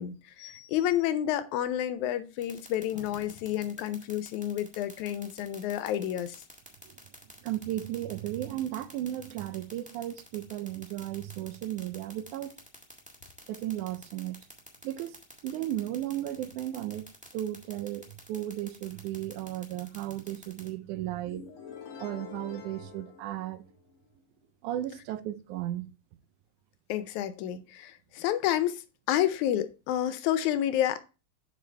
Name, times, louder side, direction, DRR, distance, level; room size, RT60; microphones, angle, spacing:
voice 1, 0.0-6.4 26.9-28.8 29.1-31.0, left 11 dB, 80° left, 2.0 m, -30 dB
sound 1, 2.4-20.7, equal, 5° right, 0.6 m, -49 dB
voice 2, 7.4-12.6 13.5-14.4 14.8-21.4 22.0-23.6 24.6-25.9, right 13 dB, 85° right, 2.1 m, -35 dB
Flashback Sound, 21.3-24.1, left 7 dB, 60° left, 1.7 m, -46 dB
7.6 x 5.7 x 3.3 m
omnidirectional pair, 3.4 m